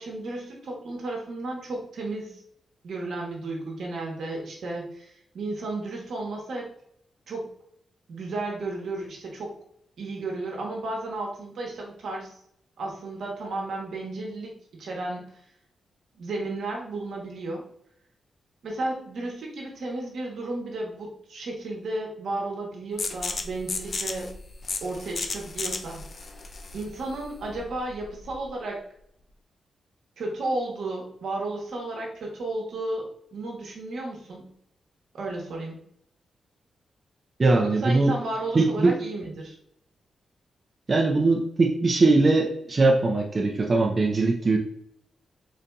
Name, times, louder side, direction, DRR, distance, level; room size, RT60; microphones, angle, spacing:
voice 1, 0.0-2.4 2.8-6.7 7.3-7.5 8.1-9.5 10.0-12.3 12.8-15.2 16.1-17.6 18.6-24.3 24.8-26.0 26.7-28.8 30.2-34.5 35.1-35.8 37.6-39.6, right 2 dB, 75° right, -1 dB, 1.0 m, -33 dB
sound 1, 23.0-28.5, left 3 dB, 50° left, 0.4 m, -34 dB
voice 2, 37.4-38.1 38.5-39.0 40.9-44.6, right 3 dB, 40° right, 0 dB, 0.5 m, -21 dB
4.0 x 2.7 x 2.3 m, 0.70 s
cardioid pair, 65°, 0 cm